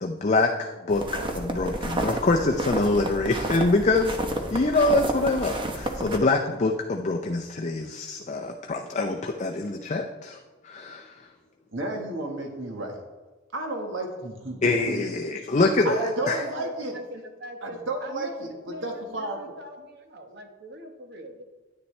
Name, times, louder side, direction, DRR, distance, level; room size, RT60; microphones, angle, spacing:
voice 1, 0.0-4.2 4.5-10.4 10.6-11.3 14.6-16.0 16.3-16.4, left 3 dB, 35° left, 2 dB, 0.6 m, -25 dB
sound 1, 0.9-6.2, right 1 dB, 25° right, 0.9 m, -31 dB
voice 2, 11.7-13.0 13.5-15.0 15.8-16.9 17.6-19.5, right 1 dB, 75° right, 2 dB, 1.4 m, -32 dB
voice 3, 15.9-18.9 19.2-21.5, right 1 dB, 55° right, 5 dB, 1.1 m, -38 dB
9.8 x 9.7 x 3.2 m, 1.2 s
head